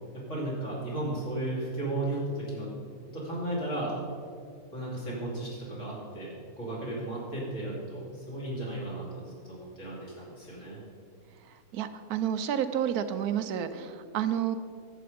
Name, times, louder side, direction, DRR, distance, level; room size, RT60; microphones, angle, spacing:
voice 1, 0.1-2.7 3.1-3.9 4.7-10.8, right 1 dB, 55° left, -5 dB, 3.4 m, -35 dB
voice 2, 11.7-14.6, right 9 dB, 85° right, 10 dB, 1.2 m, -30 dB
11.0 x 7.9 x 5.1 m, 2.3 s
omnidirectional pair, 1.6 m